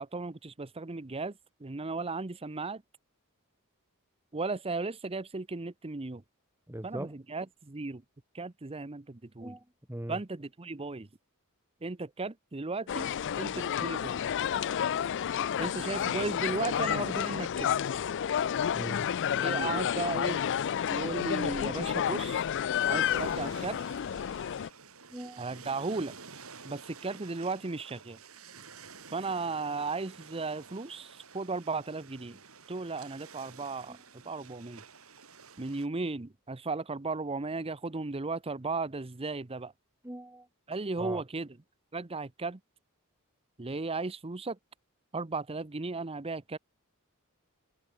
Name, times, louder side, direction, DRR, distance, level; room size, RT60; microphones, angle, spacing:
voice 1, 0.0-2.8 4.3-6.2 6.8-8.0 8.3-9.6 10.1-11.1 11.8-13.1 13.4-14.2 15.6-17.8 19.3-20.4 20.9-22.4 22.9-23.8 25.4-26.2 26.6-28.2 29.1-32.4 32.7-34.8 35.6-39.7 40.7-41.6 41.9-42.6 43.6-44.6 45.1-46.6, right 3 dB, 25° right, 0.8 m, -35 dB
voice 2, 6.7-7.1 9.4-9.6 9.9-10.2 13.5-13.7 18.7-19.0 25.1-25.5 40.0-40.5 41.0-41.2, right 1 dB, 10° right, 1.3 m, -40 dB
sound 1, 12.9-24.7, left 9 dB, 55° left, 0.4 m, -30 dB
sound 2, 22.8-35.9, right 5 dB, 70° right, 4.6 m, -51 dB
head